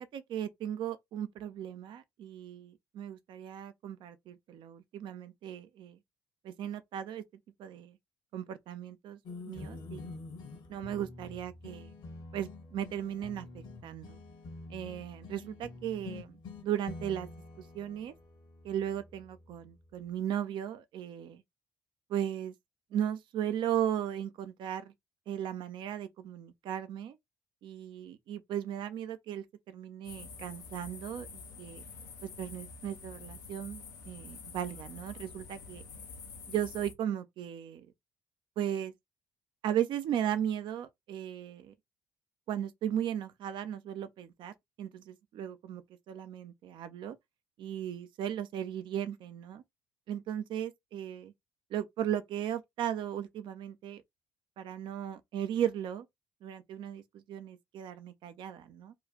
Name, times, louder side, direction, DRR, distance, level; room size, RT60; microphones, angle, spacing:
voice 1, 0.1-6.0 6.4-7.2 7.6-8.0 8.3-9.2 9.5-10.2 10.7-11.9 12.3-14.2 14.7-17.3 17.6-18.1 18.6-21.4 22.1-22.5 22.9-24.9 25.3-27.2 27.6-31.8 32.4-35.8 36.5-37.9 38.6-38.9 39.6-41.7 42.5-44.5 44.8-45.8 46.1-47.2 47.6-49.6 50.1-51.3 51.7-54.0 54.6-56.1 56.4-58.9, right 10 dB, 60° right, 0.6 m, -36 dB
sound 1, 9.2-19.8, left 3 dB, 55° left, 1.1 m, -47 dB
sound 2, 30.0-36.9, left 4 dB, 85° left, 0.7 m, -48 dB
3.0 x 2.4 x 3.6 m
figure-of-eight pair, 45°, 9 cm